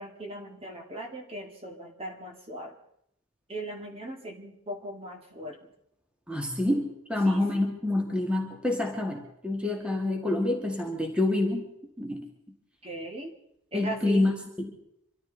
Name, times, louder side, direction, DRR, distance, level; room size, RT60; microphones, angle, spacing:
voice 1, 0.0-2.8 3.5-5.7 7.2-7.6 12.8-13.3 13.7-14.3, right 1 dB, 25° right, 2 dB, 2.0 m, -39 dB
voice 2, 6.3-11.7 12.0-12.3 13.7-14.3 14.6-14.7, left 2 dB, 5° right, 1 dB, 1.8 m, -27 dB
25.5 x 14.0 x 4.0 m, 0.75 s
head